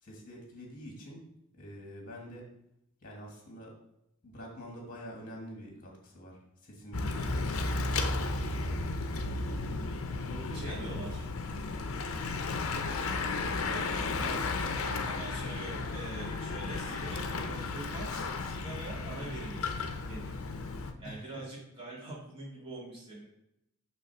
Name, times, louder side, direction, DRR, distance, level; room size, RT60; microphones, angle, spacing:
voice 1, 0.0-1.2 1.6-2.5 3.0-3.7 4.2-7.8 8.4-8.9 10.2-11.0 14.1-14.8 21.0-21.4, equal, 40° left, -1 dB, 1.6 m, -46 dB
Bicycle / Mechanisms, 6.9-20.9, left 3 dB, 65° left, 0.6 m, -34 dB
voice 2, 10.5-11.2 13.7-14.0 15.1-19.8 20.1-20.4 21.0-23.3, right 2 dB, 25° right, -5 dB, 2.0 m, -44 dB
6.2 x 3.3 x 5.8 m, 0.83 s
head